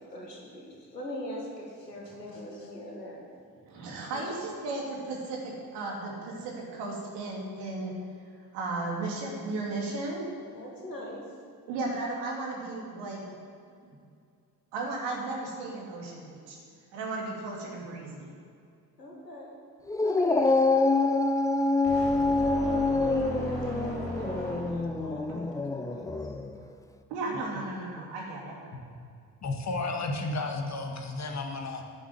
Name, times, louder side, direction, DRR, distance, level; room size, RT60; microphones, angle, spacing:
voice 1, 0.0-3.2 4.1-4.3 10.5-11.3 19.0-19.5 20.0-21.2 22.2-26.3 29.8-29.9, left 1 dB, 85° left, -1 dB, 1.7 m, -42 dB
voice 2, 3.6-7.9 8.5-10.3 11.7-13.4 13.8-14.0 14.7-16.6 16.9-18.3 24.3-24.5 25.3-25.4 26.6-26.7 27.1-28.6, right 2 dB, 60° right, -2 dB, 3.1 m, -35 dB
Dog, 19.9-26.5, left 3 dB, 5° left, 0.6 m, -26 dB
sound 1, 21.8-25.0, equal, 85° right, 2.3 m, -37 dB
voice 3, 29.4-32.0, left 2 dB, 35° left, 3 dB, 1.8 m, -33 dB
9.9 x 8.0 x 8.0 m, 2.3 s
figure-of-eight pair, 50°, 48 cm